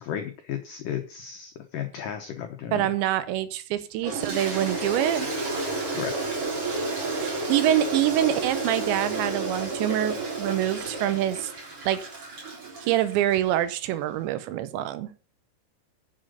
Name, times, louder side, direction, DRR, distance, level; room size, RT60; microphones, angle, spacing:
voice 1, 0.0-2.9 5.9-6.2, left 9 dB, 85° left, 5 dB, 1.8 m, -34 dB
voice 2, 2.7-5.3 7.1-11.5 11.9-12.0 12.8-15.1, right 12 dB, 80° right, 13 dB, 3.0 m, -25 dB
Toilet flush, 4.0-13.4, right 3 dB, 35° right, 4.1 m, -31 dB
10.5 x 7.4 x 5.4 m, 0.39 s
omnidirectional pair, 5.3 m